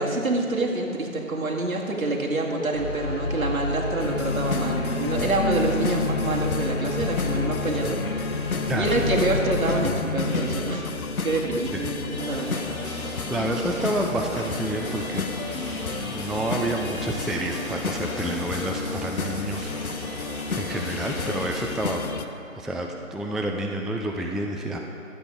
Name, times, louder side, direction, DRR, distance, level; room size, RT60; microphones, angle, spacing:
voice 1, 0.0-13.1, right 2 dB, 75° right, -1 dB, 2.1 m, -27 dB
sound 1, 2.7-9.8, left 2 dB, 20° left, 1.6 m, -31 dB
sound 2, 4.0-22.2, left 4 dB, 85° left, 0.9 m, -30 dB
voice 2, 8.7-9.1 11.7-11.9 12.5-12.6 13.3-15.2 15.7-19.7 20.6-22.0 22.5-24.8, right 1 dB, ahead, 1 dB, 0.3 m, -29 dB
sound 3, 12.1-21.6, right 1 dB, 30° right, 1.8 m, -39 dB
12.0 x 8.0 x 4.8 m, 2.7 s
figure-of-eight pair, 165°, 42 cm